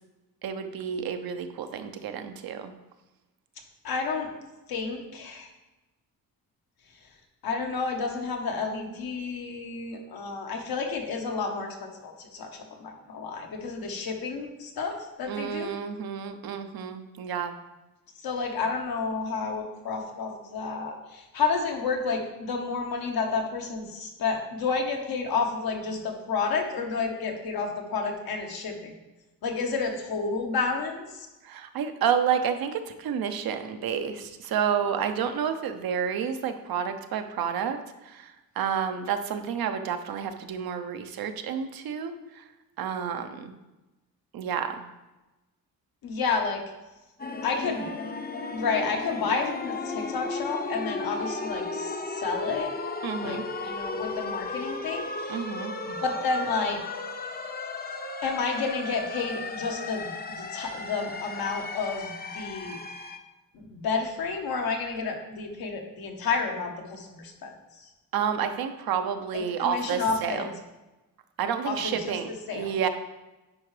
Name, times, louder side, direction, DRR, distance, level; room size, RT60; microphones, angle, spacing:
voice 1, 0.4-2.7 15.3-17.6 31.4-37.8 38.0-42.4 42.8-43.5 44.3-44.9 53.0-53.4 55.3-55.7 68.1-70.4 71.4-72.9, right 7 dB, 75° right, 8 dB, 0.8 m, -30 dB
voice 2, 3.8-4.3 4.7-5.5 7.4-15.7 18.2-28.9 29.4-31.3 46.0-46.6 47.4-47.9 48.5-52.7 53.2-55.5 55.8-56.8 58.2-62.8 63.5-67.9 69.3-70.5 71.6-72.2 72.5-72.7, left 4 dB, 75° left, 2 dB, 1.3 m, -30 dB
sound 1, 47.2-63.2, left 3 dB, 25° left, 0.7 m, -35 dB
9.8 x 4.4 x 3.3 m, 1.1 s
cardioid pair, 80°, 36 cm